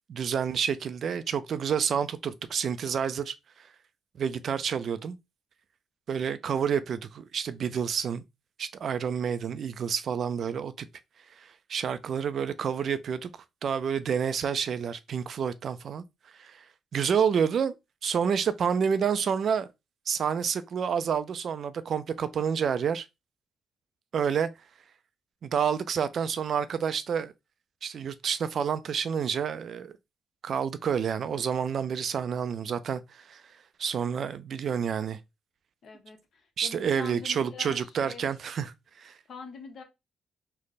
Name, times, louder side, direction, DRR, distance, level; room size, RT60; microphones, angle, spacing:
voice 1, 0.1-3.3 4.2-5.2 6.1-8.2 8.6-10.9 11.4-13.3 13.6-16.0 16.4-16.6 16.9-17.7 18.0-19.7 20.1-23.0 24.1-24.5 25.4-27.3 27.8-29.9 30.4-33.4 33.8-35.2 36.6-38.7 39.0-39.1, right 7 dB, 55° right, 0.3 m, -29 dB
voice 2, 35.8-38.3 39.3-39.8, left 5 dB, 60° left, 0.9 m, -44 dB
3.3 x 2.1 x 4.0 m
cardioid pair, 90°, 0 cm